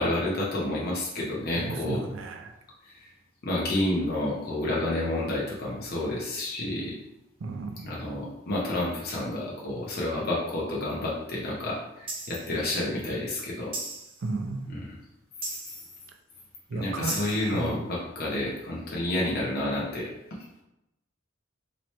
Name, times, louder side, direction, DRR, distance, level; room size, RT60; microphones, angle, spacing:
voice 1, 0.0-2.0 2.9-3.1 3.4-7.0 7.8-13.7 14.7-14.8 16.7-20.1, left 1 dB, 55° left, -4 dB, 0.8 m, -29 dB
voice 2, 1.5-2.5 7.4-7.9 14.2-14.7 16.7-17.2 17.5-17.7, right 3 dB, 80° right, 5 dB, 0.5 m, -33 dB
sound 1, 12.1-12.5 13.7-14.3 15.4-15.9 17.1-17.6, right 3 dB, 30° right, 0.6 m, -37 dB
3.0 x 2.9 x 3.1 m, 0.89 s
head